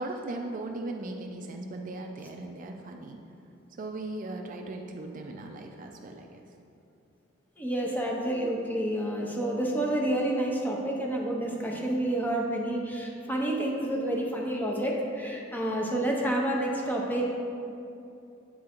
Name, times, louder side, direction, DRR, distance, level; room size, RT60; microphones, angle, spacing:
voice 1, 0.0-3.2 3.8-6.4, right 2 dB, 40° right, 3 dB, 0.4 m, -38 dB
voice 2, 7.6-17.4, right 1 dB, 10° left, -1 dB, 0.7 m, -29 dB
8.4 x 3.7 x 4.3 m, 2.7 s
head